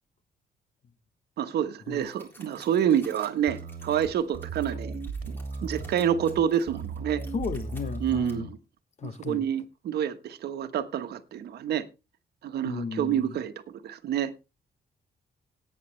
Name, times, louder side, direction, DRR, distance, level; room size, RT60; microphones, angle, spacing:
voice 1, 1.4-5.0 5.3-7.2 8.0-8.6 9.0-11.9 12.4-14.3, right 9 dB, 75° right, 1.2 m, -28 dB
sound 1, 2.0-8.3, equal, 15° left, 3.8 m, -54 dB
sound 2, 3.5-8.5, right 4 dB, 55° right, 2.1 m, -37 dB
voice 2, 7.3-8.5 9.0-9.5 12.6-13.4, left 5 dB, 45° left, 1.0 m, -34 dB
17.5 x 9.2 x 3.2 m
cardioid pair, 140°, 17 cm